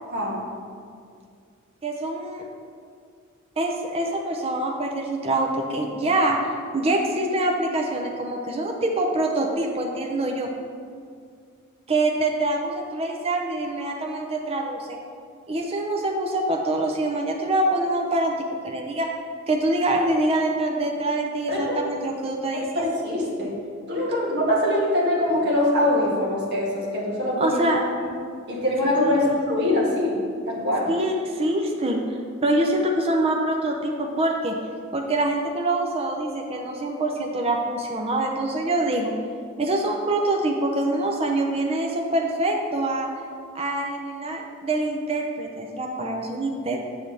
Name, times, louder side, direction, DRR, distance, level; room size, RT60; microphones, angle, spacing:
voice 1, 0.1-0.5 21.5-21.8 22.5-23.5 23.9-27.6 28.5-30.2 30.5-30.9, left 1 dB, 50° right, -5 dB, 2.0 m, -23 dB
voice 2, 1.8-2.4 3.6-6.4 6.7-10.5 11.9-15.0 15.5-18.4 18.6-19.1 19.5-22.9 27.4-27.8 29.0-29.4 30.9-34.5 34.9-39.1 39.6-43.1 43.5-46.8, right 1 dB, 30° right, 1 dB, 0.6 m, -25 dB
7.7 x 7.5 x 3.4 m, 2.2 s
head